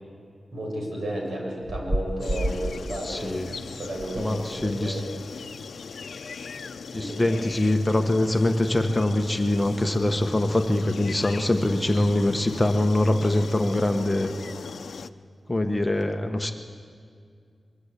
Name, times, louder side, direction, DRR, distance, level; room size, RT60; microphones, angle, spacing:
voice 1, 0.5-5.2 6.9-7.4, right 1 dB, 70° right, -1 dB, 7.4 m, -33 dB
sound 1, 1.6-2.8 3.9-4.3 4.5-4.8, equal, 15° right, 1.1 m, -30 dB
sound 2, 2.2-15.1, left 5 dB, 75° left, 0.7 m, -39 dB
voice 2, 3.0-3.5 4.2-5.0 6.9-14.3 15.5-16.5, left 1 dB, 15° left, 5 dB, 1.3 m, -23 dB
23.5 x 22.5 x 8.3 m, 2.3 s
wide cardioid pair, 115°, 0 cm